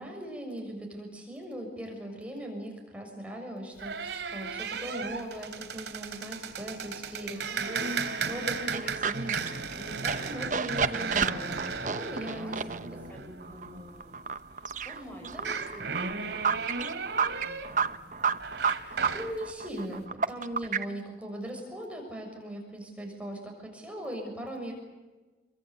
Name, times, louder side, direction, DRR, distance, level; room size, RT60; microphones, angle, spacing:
voice 1, 0.0-13.0 15.2-15.7 18.8-24.7, equal, 5° right, 1 dB, 6.6 m, -39 dB
sound 1, 3.8-14.2 15.3-19.4, right 5 dB, 85° right, 3.5 m, -35 dB
voice 2, 7.5-8.0 12.3-14.2 14.5-16.8 17.4-18.8, equal, 10° left, 2 dB, 6.0 m, -51 dB
sound 2, 8.7-20.9, right 6 dB, 45° right, 1.0 m, -31 dB
29.0 x 24.0 x 8.3 m, 1.2 s
head